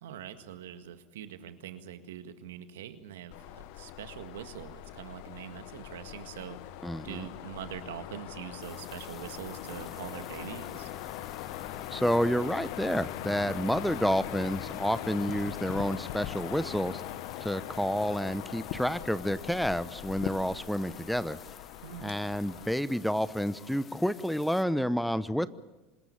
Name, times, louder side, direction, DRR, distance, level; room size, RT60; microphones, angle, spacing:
voice 1, 0.0-6.6 7.0-10.9 21.8-22.2, right 9 dB, 80° right, 9 dB, 1.8 m, -43 dB
sound 1, 3.3-22.7, left 13 dB, 65° left, 1.2 m, -41 dB
voice 2, 6.8-7.2 11.9-17.0 17.4-21.4 22.0-25.5, equal, ahead, 15 dB, 0.9 m, -29 dB
sound 2, 8.6-24.6, left 7 dB, 35° left, 1.5 m, -51 dB
26.0 x 20.5 x 7.2 m, 1.1 s
hypercardioid pair, 80°, 0 cm